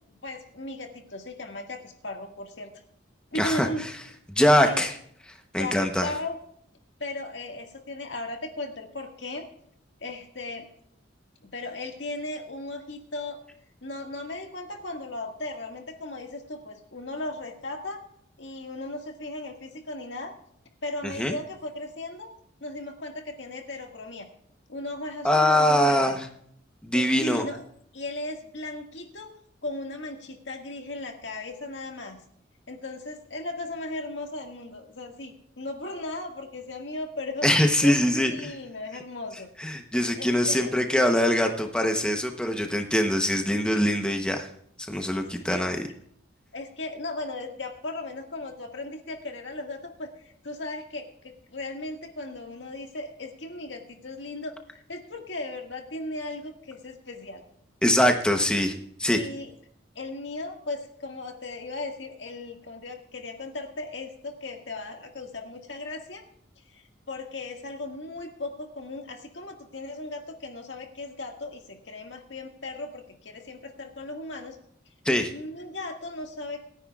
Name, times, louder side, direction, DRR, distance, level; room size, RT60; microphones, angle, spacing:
voice 1, 0.1-2.7 3.3-3.9 4.6-4.8 5.6-6.4 7.0-9.5 10.0-10.7 11.5-13.4 13.8-18.0 18.4-20.3 20.8-22.3 22.6-24.3 24.7-26.2 26.9-27.7 27.9-29.3 29.6-32.2 32.7-39.5 40.2-40.7 45.5-45.6 46.5-57.4 59.1-59.5 60.0-66.2 66.7-74.6 75.3-76.6, left 2 dB, 70° left, 3 dB, 1.9 m, -37 dB
voice 2, 3.3-3.7 4.3-5.0 5.5-6.1 21.2-21.3 25.2-26.3 26.8-27.4 37.4-38.5 39.6-44.5 44.8-45.8 57.8-58.7 59.0-59.2 75.0-75.3, left 1 dB, 5° left, 4 dB, 0.9 m, -23 dB
27.5 x 9.9 x 2.4 m, 0.67 s
head